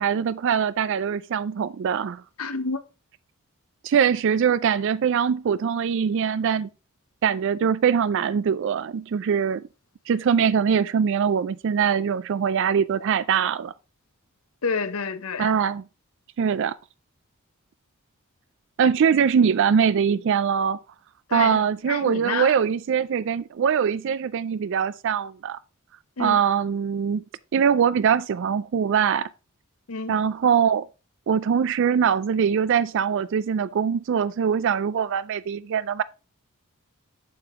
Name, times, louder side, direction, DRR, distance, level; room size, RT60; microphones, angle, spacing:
voice 1, 0.0-2.2 3.8-6.7 7.2-9.6 10.1-13.7 15.4-15.8 16.4-16.8 18.8-20.8 21.3-25.6 26.2-27.2 27.5-29.3 30.1-30.9 31.3-36.0, right 7 dB, 55° right, 0.3 m, -22 dB
voice 2, 2.4-2.8 14.6-15.5 21.3-22.6 26.2-26.4 29.9-30.2, left 4 dB, 80° left, 0.9 m, -29 dB
7.8 x 6.8 x 3.6 m
head